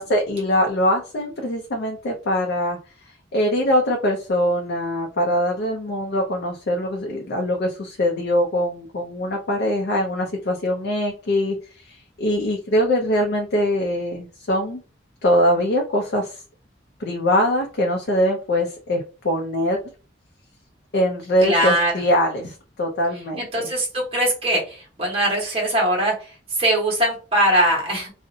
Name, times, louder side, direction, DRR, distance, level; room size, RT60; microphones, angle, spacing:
voice 1, 0.0-2.8 3.3-14.8 15.2-16.4 17.0-19.8 20.9-23.7, left 1 dB, 60° left, 1 dB, 0.4 m, -22 dB
voice 2, 21.4-21.9 23.4-26.3 26.6-28.1, right 1 dB, 30° right, -3 dB, 1.1 m, -21 dB
2.6 x 2.0 x 2.6 m, 0.35 s
head